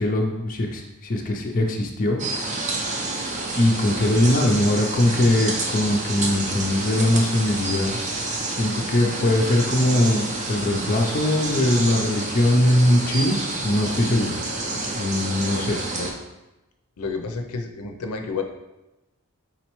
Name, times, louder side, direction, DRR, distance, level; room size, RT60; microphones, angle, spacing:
voice 1, 0.0-2.2 3.6-8.0 8.6-14.4 14.9-15.8, left 1 dB, 35° left, 1 dB, 0.4 m, -21 dB
sound 1, 2.2-16.1, right 2 dB, 30° right, 0.5 m, -29 dB
voice 2, 15.5-16.1 17.0-18.4, left 4 dB, 90° left, 4 dB, 0.5 m, -31 dB
4.2 x 3.9 x 3.0 m, 0.99 s
head